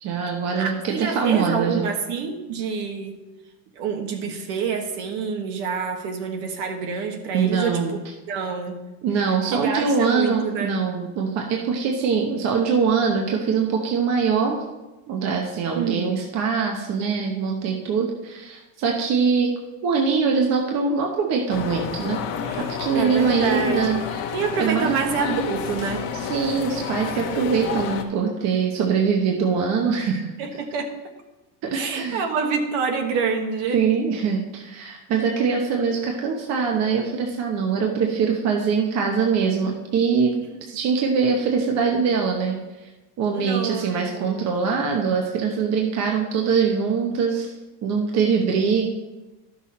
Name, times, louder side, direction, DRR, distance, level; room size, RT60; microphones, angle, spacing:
voice 1, 0.0-1.9 7.3-8.0 9.0-14.6 15.1-19.5 19.8-22.2 22.6-24.0 24.6-25.0 26.1-30.3 31.6-32.2 33.7-40.4 40.7-42.9 43.2-47.5 47.8-48.9, right 5 dB, 35° right, 1 dB, 0.9 m, -23 dB
voice 2, 0.6-3.2 3.7-8.0 8.3-8.8 9.5-10.7 15.7-16.2 22.5-22.6 22.9-24.0 24.3-26.1 30.0-30.1 30.4-30.9 31.7-33.8 43.3-44.3, right 5 dB, 55° right, 5 dB, 1.4 m, -27 dB
sound 1, 21.5-28.0, left 7 dB, 50° left, 1.2 m, -30 dB
12.0 x 6.3 x 4.2 m, 1.1 s
cardioid pair, 175°, 45 cm